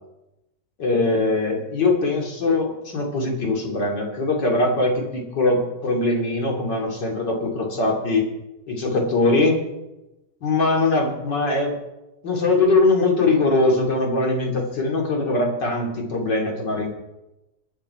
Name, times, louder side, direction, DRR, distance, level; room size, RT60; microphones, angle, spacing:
voice 1, 0.8-8.3 8.7-9.6 10.4-11.7 12.2-16.9, left 2 dB, 85° left, 0 dB, 3.2 m, -21 dB
22.0 x 9.0 x 4.7 m, 0.97 s
omnidirectional pair, 1.9 m